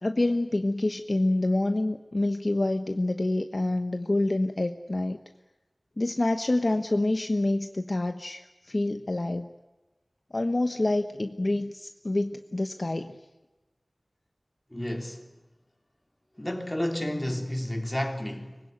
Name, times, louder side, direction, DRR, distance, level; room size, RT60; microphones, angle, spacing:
voice 1, 0.0-5.2 6.0-9.5 10.3-13.2, left 2 dB, 50° left, 1.1 m, -27 dB
voice 2, 14.7-15.2 16.4-18.6, left 1 dB, 15° left, 3.2 m, -31 dB
24.0 x 21.0 x 9.3 m
wide cardioid pair, 60°, 0 cm